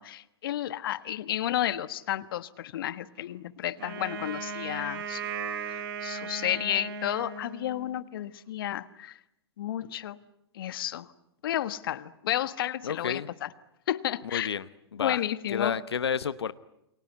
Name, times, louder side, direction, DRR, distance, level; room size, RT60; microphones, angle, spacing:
voice 1, 0.0-5.2 5.6-9.2 9.6-10.2 10.5-11.1 11.4-13.5 13.9-14.5 15.0-15.8, left 12 dB, 60° left, 15 dB, 1.3 m, -32 dB
Wind instrument woodwind instrument, 3.8-8.0, right 5 dB, 60° right, 5.0 m, -37 dB
voice 2, 12.8-13.3 14.3-14.6 14.9-15.2 15.5-16.5, left 7 dB, 75° left, 15 dB, 0.9 m, -30 dB
28.5 x 23.0 x 8.1 m, 0.86 s
hypercardioid pair, 110°, 14 cm